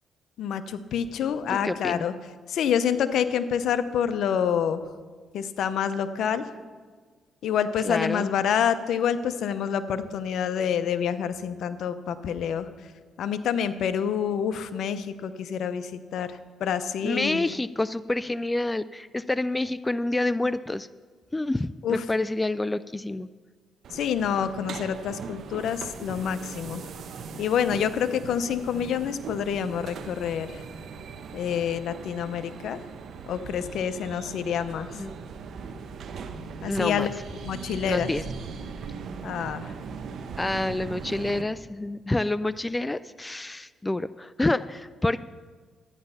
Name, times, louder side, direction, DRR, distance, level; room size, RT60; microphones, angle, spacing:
voice 1, 0.4-2.1 2.5-4.8 5.3-6.4 7.4-12.7 13.2-17.5 21.8-22.0 23.9-26.8 27.4-30.6 31.3-32.8 33.3-35.0 36.6-37.1 37.4-38.1 39.2-39.7, left 8 dB, 75° left, 12 dB, 0.7 m, -27 dB
voice 2, 1.5-2.1 7.8-8.3 17.0-20.9 21.3-23.3 34.9-35.2 36.7-37.1 37.8-38.2 40.4-45.2, left 2 dB, 15° left, 15 dB, 0.3 m, -28 dB
sound 1, 23.8-41.4, right 5 dB, 65° right, 0.9 m, -39 dB
12.5 x 9.8 x 5.6 m, 1.5 s
cardioid pair, 90°, 0 cm